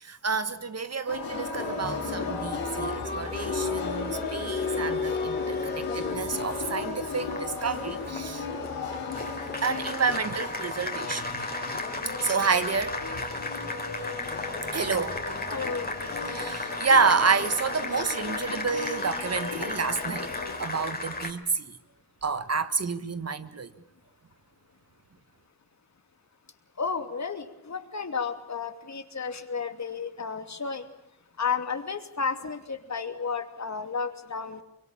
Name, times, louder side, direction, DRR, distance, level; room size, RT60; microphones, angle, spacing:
voice 1, 0.0-8.4 9.6-11.3 12.2-12.9 14.7-15.2 16.3-20.3 20.6-21.7 22.2-23.7, right 5 dB, 45° right, 1.6 m, -29 dB
sound 1, 1.1-20.6, left 4 dB, 85° left, 4.5 m, -36 dB
Applause, 1.3-21.3, left 3 dB, 25° left, 3.9 m, -35 dB
voice 2, 15.5-15.9 26.8-30.9 31.4-34.6, left 5 dB, 50° left, 2.8 m, -32 dB
24.5 x 22.5 x 8.8 m
cardioid pair, 55°, 36 cm